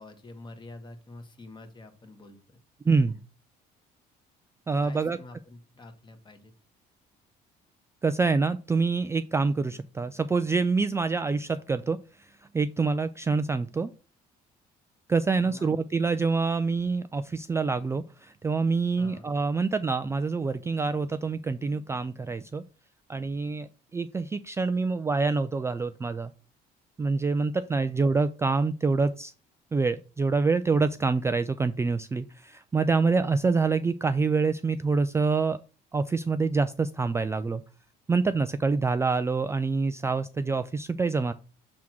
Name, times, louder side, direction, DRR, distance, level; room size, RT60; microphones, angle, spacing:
voice 1, 0.0-2.6 4.8-6.5 15.4-15.8 19.0-19.3 27.8-28.0, left 2 dB, 25° left, 7 dB, 1.5 m, -47 dB
voice 2, 2.9-3.2 4.7-5.2 8.0-12.3 12.5-13.9 15.1-22.6 23.1-26.3 27.0-29.3 29.7-35.6 35.9-37.6 38.1-41.3, right 4 dB, 15° right, 10 dB, 0.3 m, -26 dB
6.2 x 3.6 x 6.0 m, 0.35 s
cardioid pair, 110°, 17 cm